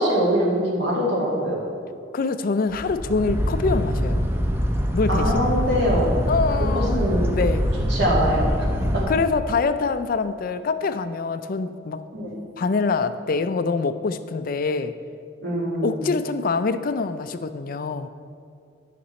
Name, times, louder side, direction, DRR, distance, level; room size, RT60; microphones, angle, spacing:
voice 1, 0.0-1.6 5.1-6.1 6.6-7.3 7.9-8.7 8.9-9.0 12.1-12.3 15.4-16.1, equal, 60° right, -5 dB, 2.2 m, -23 dB
voice 2, 2.1-4.2 4.9-5.5 6.3-7.1 7.3-7.7 9.1-12.0 12.6-14.9 15.8-18.1, left 4 dB, 45° left, 11 dB, 0.4 m, -25 dB
sound 1, 2.7-9.1, equal, 10° right, 0.6 m, -24 dB
11.5 x 5.9 x 4.3 m, 2.4 s
head